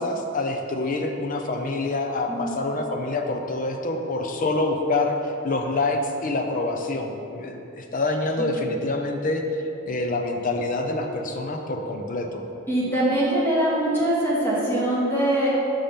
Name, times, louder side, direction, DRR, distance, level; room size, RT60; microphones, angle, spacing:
voice 1, 0.0-9.4 9.9-12.4, left 2 dB, 45° left, 3 dB, 0.6 m, -26 dB
voice 2, 12.7-15.5, right 1 dB, 10° left, -8 dB, 1.7 m, -23 dB
5.3 x 5.1 x 5.8 m, 2.8 s
head